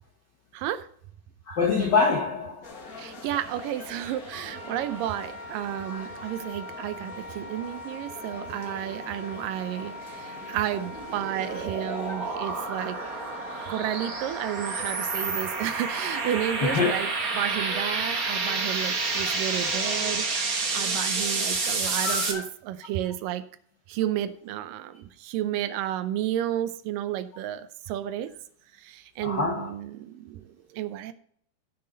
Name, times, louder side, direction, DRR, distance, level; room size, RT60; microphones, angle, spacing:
voice 1, 0.5-0.9 3.0-13.0 13.7-23.4 23.9-28.3 28.8-31.1, right 12 dB, 85° right, 2.3 m, -32 dB
voice 2, 1.5-2.7 4.3-4.4 5.9-6.0 11.5-11.6 12.1-12.2 16.6-16.9 22.0-22.4 29.2-29.7, left 4 dB, 70° left, 1.0 m, -25 dB
sound 1, 2.6-22.5, left 3 dB, 45° left, 1.1 m, -44 dB
Wind instrument woodwind instrument, 4.4-20.5, equal, 20° right, 1.9 m, -42 dB
sound 2, 10.3-22.3, right 4 dB, 60° right, 0.9 m, -29 dB
16.0 x 5.8 x 3.9 m
omnidirectional pair, 3.8 m